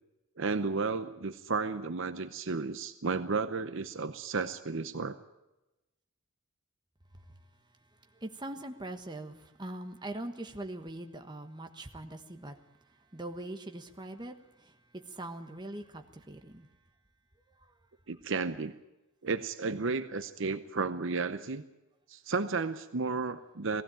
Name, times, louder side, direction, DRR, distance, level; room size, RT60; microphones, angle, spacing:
voice 1, 0.4-5.2 18.1-18.7 19.2-21.6 22.1-23.8, right 4 dB, 60° right, 11 dB, 0.8 m, -33 dB
voice 2, 8.2-12.5 13.1-14.3 15.2-16.7, right 1 dB, 20° right, 5 dB, 1.4 m, -41 dB
19.0 x 15.5 x 9.0 m, 1.0 s
head